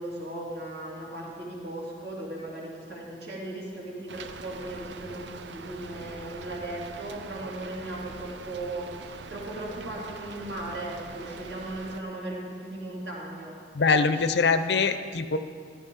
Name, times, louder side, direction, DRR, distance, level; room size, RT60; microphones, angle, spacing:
voice 1, 0.0-14.3, right 1 dB, 65° right, -3 dB, 2.6 m, -37 dB
Rain, 4.1-12.0, right 4 dB, 85° right, 0.5 m, -43 dB
voice 2, 13.7-15.4, left 4 dB, 70° left, 10 dB, 0.6 m, -23 dB
15.0 x 12.5 x 3.6 m, 2.1 s
head